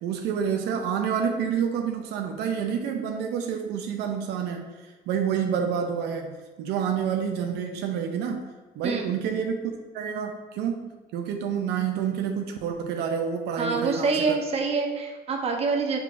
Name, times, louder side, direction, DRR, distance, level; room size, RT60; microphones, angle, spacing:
voice 1, 0.0-8.5 8.8-14.4, right 7 dB, 85° right, 3 dB, 0.5 m, -28 dB
voice 2, 13.6-16.0, right 4 dB, 35° right, 2 dB, 0.7 m, -26 dB
5.4 x 3.4 x 2.5 m, 1.3 s
cardioid pair, 110°, 17 cm